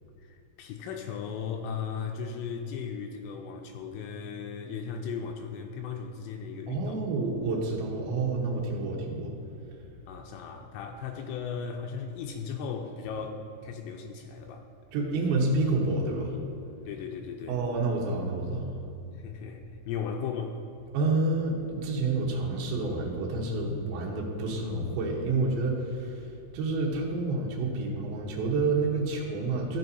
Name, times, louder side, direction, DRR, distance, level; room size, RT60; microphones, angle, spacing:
voice 1, 0.2-7.0 10.1-14.7 16.9-17.6 19.2-20.6, left 6 dB, 85° left, 3 dB, 2.7 m, -36 dB
voice 2, 6.7-9.3 14.9-16.4 16.7-16.9 17.5-18.7 20.9-26.3 26.5-29.8, right 3 dB, 70° right, -3 dB, 2.6 m, -29 dB
14.0 x 7.0 x 2.7 m, 2.8 s
omnidirectional pair, 5.0 m